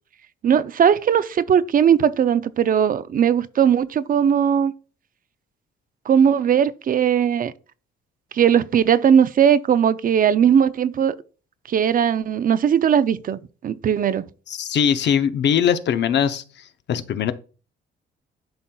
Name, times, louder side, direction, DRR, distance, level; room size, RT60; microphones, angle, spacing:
voice 1, 0.4-4.7 6.1-7.5 8.3-11.2 11.7-14.3, right 8 dB, 45° right, 0.4 m, -18 dB
voice 2, 14.5-16.4 16.9-17.3, left 8 dB, 60° left, 0.7 m, -21 dB
11.0 x 4.2 x 2.3 m
cardioid pair, 90°, 20 cm